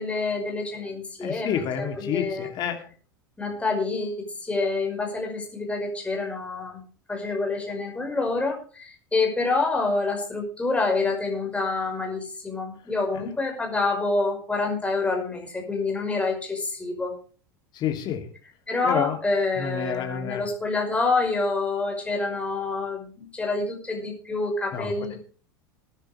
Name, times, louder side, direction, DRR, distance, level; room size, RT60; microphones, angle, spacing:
voice 1, 0.0-2.5 3.4-6.8 7.1-17.1 18.7-25.2, left 3 dB, 10° left, 1 dB, 5.5 m, -27 dB
voice 2, 1.2-2.8 17.7-18.2 18.8-19.2 19.6-20.4 24.7-24.9, left 9 dB, 40° left, 5 dB, 2.9 m, -28 dB
21.0 x 10.0 x 3.4 m, 0.39 s
figure-of-eight pair, 80°, 11 cm